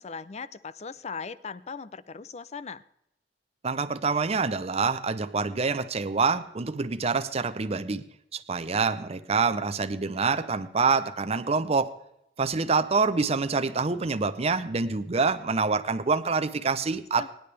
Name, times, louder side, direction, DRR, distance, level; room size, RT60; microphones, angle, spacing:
voice 1, 0.0-2.8 17.2-17.3, left 5 dB, 40° left, 17 dB, 0.5 m, -39 dB
voice 2, 3.6-8.0 8.3-11.9 12.4-17.3, right 4 dB, 35° right, 11 dB, 0.6 m, -26 dB
24.0 x 10.5 x 3.4 m, 0.80 s
head